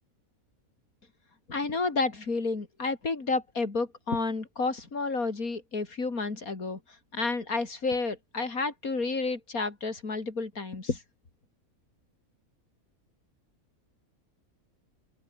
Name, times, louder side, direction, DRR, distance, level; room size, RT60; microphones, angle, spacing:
voice 1, 1.5-6.8 7.1-11.0, left 3 dB, 80° left, 3.6 m, -30 dB
open air
omnidirectional pair, 1.5 m